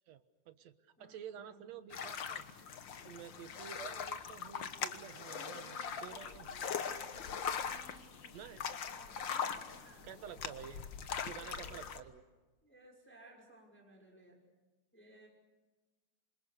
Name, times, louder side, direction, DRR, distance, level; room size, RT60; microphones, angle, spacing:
voice 1, 0.1-2.4 3.0-5.8 6.0-7.1 8.3-8.7 10.0-10.8 11.2-12.2, right 8 dB, 65° right, 10 dB, 2.3 m, -50 dB
voice 2, 1.0-1.6 5.3-6.3 7.0-8.4 8.9-10.4 11.3-11.9 12.6-14.4 14.9-15.3, right 1 dB, 5° left, 0 dB, 5.4 m, -58 dB
sound 1, 1.9-12.0, left 7 dB, 50° left, 1.5 m, -41 dB
27.5 x 27.0 x 6.7 m, 1.2 s
omnidirectional pair, 3.6 m